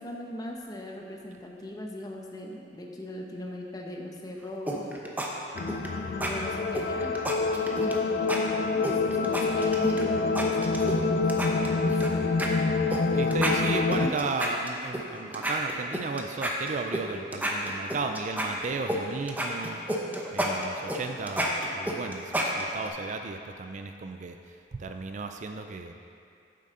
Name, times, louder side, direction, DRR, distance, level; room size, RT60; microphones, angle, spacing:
voice 1, 0.0-4.9 6.0-7.2 7.5-13.6 13.9-14.2, left 1 dB, 20° left, 0 dB, 0.9 m, -39 dB
sound 1, 4.7-5.3 5.6-5.9 6.2-6.3 6.7-8.0 8.3-8.4 8.8-10.0 10.4-11.0 11.3-12.1 12.4-12.5 12.9-13.0 13.3-15.0 15.3-17.0 17.3-19.0 19.3-22.9, right 1 dB, 10° right, 0.7 m, -30 dB
sound 2, 5.6-14.1, left 3 dB, 50° left, 0.4 m, -27 dB
voice 2, 13.1-19.8 20.3-25.9, right 4 dB, 40° right, 5 dB, 0.4 m, -34 dB
9.5 x 7.6 x 3.8 m, 2.4 s
head